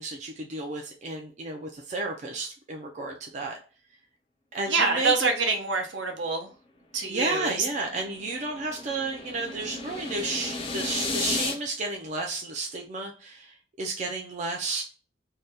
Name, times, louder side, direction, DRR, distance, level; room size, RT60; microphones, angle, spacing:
voice 1, 0.0-3.6 4.5-5.3 7.1-14.8, right 3 dB, 40° right, 2 dB, 0.4 m, -32 dB
voice 2, 4.7-6.5 6.9-7.5, right 4 dB, 70° right, 4 dB, 0.7 m, -25 dB
sound 1, 7.3-11.5, left 3 dB, 30° left, 0.4 m, -34 dB
2.7 x 2.2 x 3.3 m, 0.37 s
head